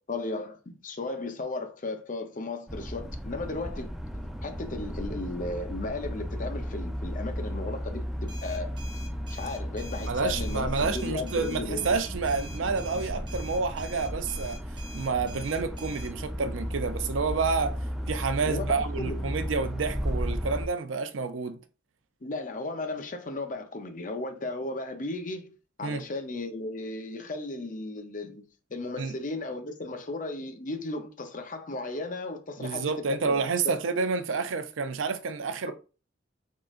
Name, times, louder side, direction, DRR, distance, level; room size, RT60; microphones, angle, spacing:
voice 1, 0.1-3.9 4.4-8.7 9.3-11.9 18.5-19.4 22.2-33.7 35.7-35.8, left 2 dB, 45° left, 0.7 m, -35 dB
sound 1, 2.7-20.7, equal, ahead, 0.4 m, -34 dB
sound 2, 8.3-16.1, equal, 25° right, 0.7 m, -47 dB
voice 2, 10.0-14.6 14.9-17.8 18.1-21.6 25.8-26.0 29.0-29.1 32.6-35.7, right 4 dB, 85° right, 0.5 m, -29 dB
3.7 x 3.7 x 2.4 m
head